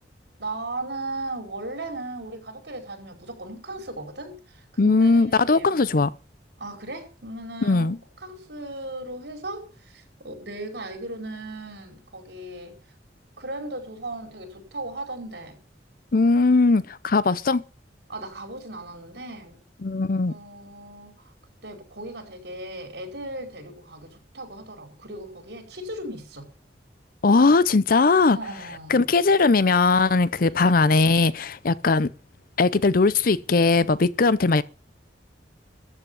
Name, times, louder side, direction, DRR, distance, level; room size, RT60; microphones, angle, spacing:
voice 1, 0.4-5.8 6.6-7.9 8.2-12.7 13.4-15.6 18.1-19.6 20.2-21.3 21.6-26.5 28.3-29.0, right 2 dB, 70° right, 5.0 m, -37 dB
voice 2, 4.8-6.1 7.6-8.0 16.1-17.6 19.8-20.3 27.2-28.4 28.9-32.1 32.6-34.6, left 3 dB, 55° left, 0.6 m, -19 dB
14.0 x 8.2 x 7.0 m
head